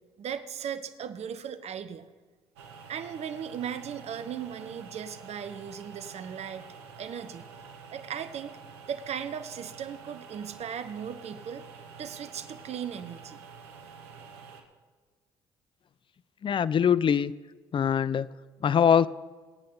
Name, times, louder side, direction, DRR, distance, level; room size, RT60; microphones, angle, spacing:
voice 1, 0.2-2.1 2.9-6.7 7.0-7.5 7.9-8.6 8.9-11.7 12.0-13.4, right 8 dB, 55° right, 11 dB, 1.1 m, -37 dB
sound 1, 2.6-14.6, right 5 dB, 85° right, 1.4 m, -48 dB
voice 2, 16.4-17.3 17.7-18.3 18.6-19.1, left 8 dB, 40° left, 18 dB, 0.6 m, -22 dB
24.5 x 8.6 x 4.0 m, 1.3 s
hypercardioid pair, 55°, 13 cm